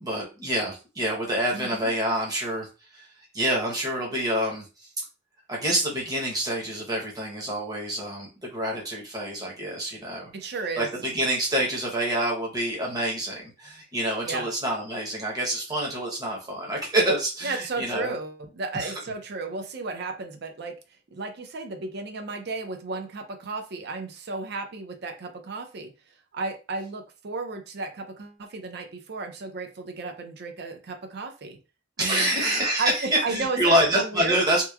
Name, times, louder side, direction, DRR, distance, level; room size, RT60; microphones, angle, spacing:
voice 1, 0.0-2.7 3.3-4.7 5.5-10.3 10.8-18.2 18.7-18.9 32.0-34.6, right 1 dB, 20° right, -2 dB, 0.8 m, -27 dB
voice 2, 1.5-1.9 10.3-10.9 14.2-14.5 17.4-20.7 21.1-25.9 26.3-31.6 32.0-32.3 32.8-34.4, right 3 dB, 55° right, 6 dB, 0.5 m, -33 dB
2.9 x 2.2 x 2.3 m, 0.31 s
head